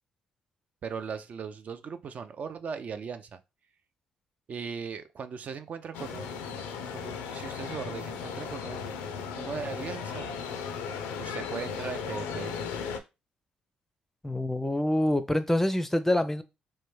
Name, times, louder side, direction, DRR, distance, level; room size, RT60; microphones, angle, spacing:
voice 1, 0.8-3.4 4.5-9.0 9.3-10.3 11.2-12.5, right 6 dB, 50° right, 0.3 m, -38 dB
sound 1, 5.9-13.0, left 6 dB, 85° left, 0.4 m, -36 dB
voice 2, 14.2-16.4, left 1 dB, 10° left, 0.4 m, -26 dB
3.2 x 2.1 x 3.1 m
supercardioid pair, 60°, 3 cm